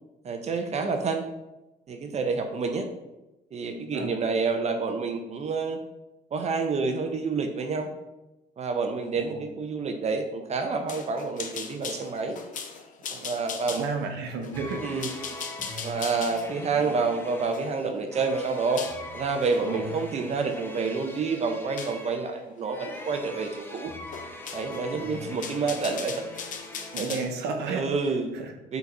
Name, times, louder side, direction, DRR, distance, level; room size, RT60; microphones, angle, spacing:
voice 1, 0.2-1.2 1.9-2.9 3.5-5.8 6.3-7.9 8.6-12.4 13.1-13.8 14.8-15.1 15.8-18.8 19.1-23.9 24.5-26.2 26.9-27.2 27.7-28.3 28.7-28.8, right 4 dB, 40° right, 5 dB, 0.6 m, -28 dB
voice 2, 9.2-9.5 13.7-15.2 16.7-16.9 19.6-19.9 26.9-27.8 28.3-28.5, right 4 dB, 85° right, 4 dB, 0.9 m, -33 dB
sound 1, 10.9-19.0 19.4-19.7 20.2-20.9 21.8-22.0 22.9-23.2 23.4-23.5 24.1-24.9 25.2-27.3, left 6 dB, 50° left, 0.7 m, -39 dB
sound 2, 14.5-27.1, left 1 dB, 10° left, 0.7 m, -42 dB
4.8 x 4.0 x 5.4 m, 1.0 s
cardioid pair, 110°, 17 cm